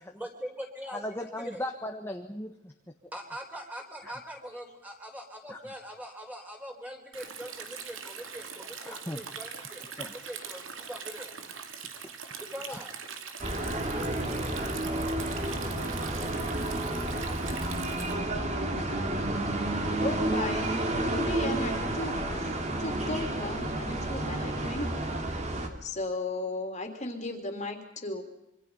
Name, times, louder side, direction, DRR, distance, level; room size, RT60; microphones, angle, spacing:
voice 1, 0.2-1.1 1.4-1.6 3.1-11.4 12.4-12.9, equal, 10° right, 2 dB, 4.1 m, -42 dB
voice 2, 0.9-2.7 4.0-4.1 5.5-5.6 8.9-9.2 10.0-10.1 12.7-12.8, left 1 dB, 10° left, 3 dB, 1.4 m, -37 dB
Stream, 7.1-18.1, right 6 dB, 70° right, 2.6 m, -42 dB
sound 1, 13.4-25.7, right 1 dB, 35° right, 2.8 m, -31 dB
voice 3, 20.0-24.9 25.8-28.2, left 2 dB, 35° left, 4 dB, 3.2 m, -36 dB
26.5 x 25.0 x 5.6 m, 0.91 s
head